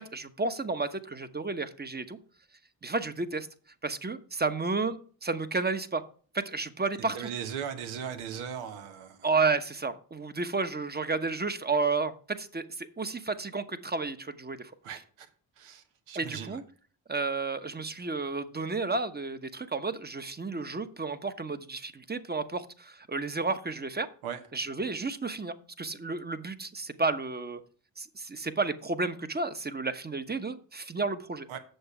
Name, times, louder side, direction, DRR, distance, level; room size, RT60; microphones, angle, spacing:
voice 1, 0.0-2.2 2.8-3.5 3.8-6.0 6.3-7.3 9.2-14.7 16.1-16.6 17.1-24.1 24.5-27.6 28.0-31.5, right 3 dB, 20° right, 10 dB, 1.0 m, -32 dB
voice 2, 7.1-9.2 14.8-15.3 15.6-16.6 24.2-24.4 31.5-31.6, right 8 dB, 85° right, 8 dB, 1.2 m, -38 dB
7.9 x 6.8 x 4.9 m, 0.43 s
hypercardioid pair, 45°, 47 cm